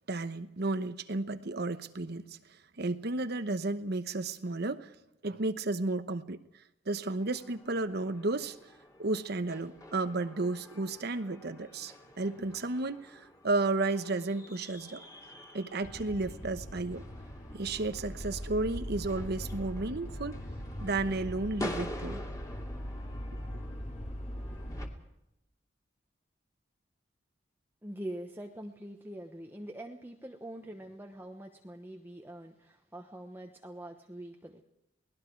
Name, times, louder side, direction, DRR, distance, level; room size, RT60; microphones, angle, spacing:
voice 1, 0.1-2.4 2.8-5.0 5.2-6.4 6.9-8.6 9.0-15.0 15.5-17.0 17.5-20.4 20.8-22.2, right 2 dB, 60° right, 11 dB, 1.0 m, -33 dB
sound 1, 7.2-24.9, left 1 dB, 20° left, 2.7 m, -48 dB
sound 2, 15.8-24.9, equal, 40° left, 2.8 m, -41 dB
voice 2, 27.8-34.6, right 1 dB, 10° right, 2 dB, 1.1 m, -44 dB
28.5 x 19.5 x 4.7 m, 0.84 s
head